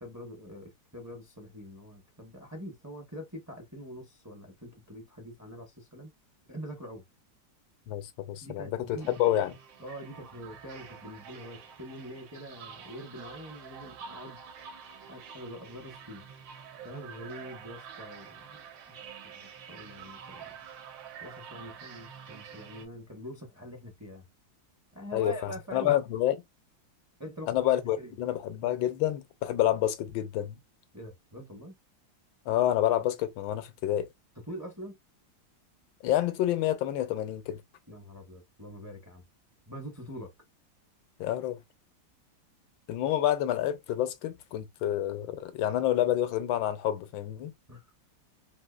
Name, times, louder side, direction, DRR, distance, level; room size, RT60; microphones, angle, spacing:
voice 1, 0.0-6.1 6.5-7.0 8.4-9.2 9.8-14.4 15.1-16.3 16.8-19.0 19.3-20.5 21.2-24.3 24.9-26.0 27.2-27.6 28.0-28.2 30.9-31.7 34.5-35.0 37.9-39.2 39.7-40.3 47.7-47.9, equal, 20° right, 0.5 m, -44 dB
voice 2, 7.9-9.5 25.1-26.4 27.5-30.6 32.5-34.1 36.0-37.6 41.2-41.6 42.9-47.5, left 12 dB, 85° left, 1.4 m, -28 dB
sound 1, 9.0-22.9, right 7 dB, 80° right, 1.6 m, -47 dB
3.6 x 2.8 x 2.3 m
omnidirectional pair, 2.1 m